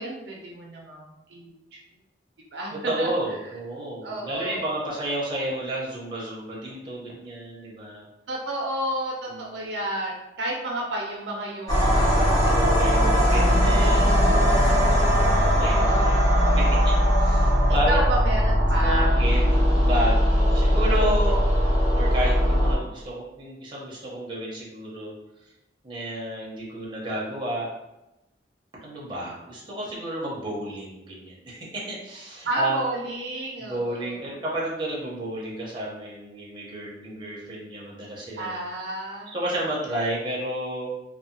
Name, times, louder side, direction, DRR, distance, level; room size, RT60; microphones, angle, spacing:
voice 1, 0.0-1.8 2.5-3.1 4.0-4.7 8.3-13.3 13.9-15.0 15.7-16.6 16.9-17.0 17.9-19.1 32.4-34.3 38.4-39.4, right 1 dB, 75° right, -1 dB, 0.5 m, -32 dB
voice 2, 2.8-8.1 9.3-9.7 12.4-14.1 15.1-16.2 16.5-18.0 18.8-21.4 21.9-25.1 25.8-27.7 28.8-32.8 33.6-38.5 39.3-40.9, right 1 dB, 25° right, -5 dB, 0.6 m, -31 dB
sound 1, 11.7-22.7, equal, 20° left, 0.7 m, -20 dB
2.6 x 2.2 x 2.6 m, 0.94 s
head